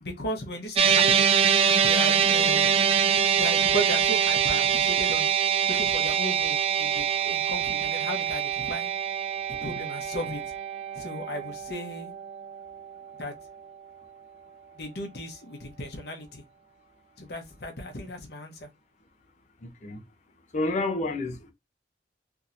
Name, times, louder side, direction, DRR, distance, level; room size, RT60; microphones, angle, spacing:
voice 1, 0.0-1.3 1.8-2.8 3.3-5.3 5.7-8.9 9.6-10.4 10.9-12.1 13.2-13.3 14.8-16.4 17.2-18.7, equal, 60° left, 1.0 m, -35 dB
sound 1, 0.8-13.2, right 7 dB, 35° right, 0.3 m, -24 dB
voice 2, 19.6-20.0 20.5-21.5, left 2 dB, 40° left, 0.7 m, -29 dB
3.6 x 2.8 x 2.5 m
head